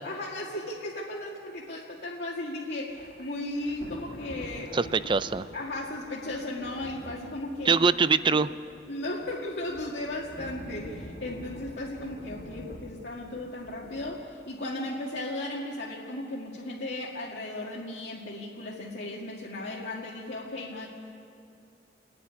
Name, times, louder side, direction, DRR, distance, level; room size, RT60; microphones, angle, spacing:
voice 1, 0.0-4.8 5.5-7.9 8.2-8.5 8.9-20.9, left 1 dB, 70° left, -3 dB, 2.1 m, -36 dB
Thunder / Rain, 2.9-14.2, left 1 dB, 50° left, 2.2 m, -46 dB
voice 2, 4.7-5.4 7.7-8.5, right 5 dB, 25° right, 14 dB, 0.5 m, -23 dB
29.5 x 9.9 x 9.6 m, 2.6 s
head